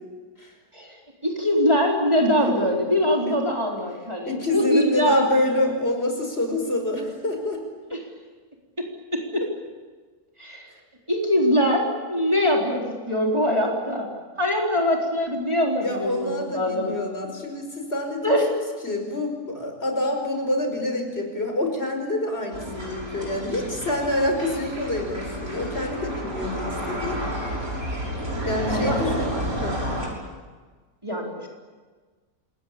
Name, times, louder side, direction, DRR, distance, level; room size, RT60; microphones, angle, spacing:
voice 1, 1.2-5.2 7.9-8.0 8.8-9.4 10.4-10.7 11.1-14.1 14.4-17.0 18.2-18.5 28.7-29.0 31.0-31.5, equal, 20° right, -1 dB, 4.0 m, -23 dB
voice 2, 4.3-7.6 15.8-27.4 28.4-29.3 29.6-29.8, left 1 dB, 40° left, 3 dB, 5.7 m, -27 dB
sound 1, 22.5-30.1, equal, 65° right, 7.1 m, -30 dB
27.5 x 21.5 x 8.7 m, 1.4 s
omnidirectional pair, 1.6 m